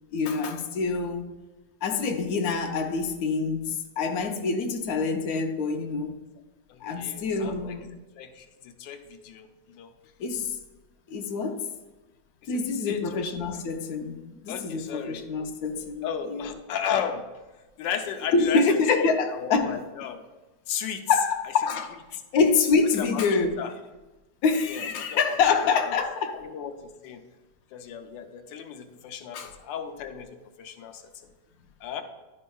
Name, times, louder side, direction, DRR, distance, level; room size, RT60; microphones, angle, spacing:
voice 1, 0.1-1.2 1.8-6.1 6.8-7.9 10.2-10.6 11.1-11.6 12.5-16.5 18.3-19.7 21.1-22.0 22.3-23.6 24.4-26.4 29.3-29.5, left 4 dB, 65° left, 1.1 m, -26 dB
voice 2, 6.7-7.7 8.2-9.5 9.7-9.9 12.4-13.2 14.5-15.3 16.0-17.2 17.8-18.6 19.0-20.2 20.7-21.1 23.0-23.2 23.6-23.7 24.7-25.2 26.4-27.2 27.7-31.1 31.8-32.0, left 8 dB, 85° left, 1.3 m, -35 dB
11.0 x 5.4 x 2.3 m
omnidirectional pair, 1.9 m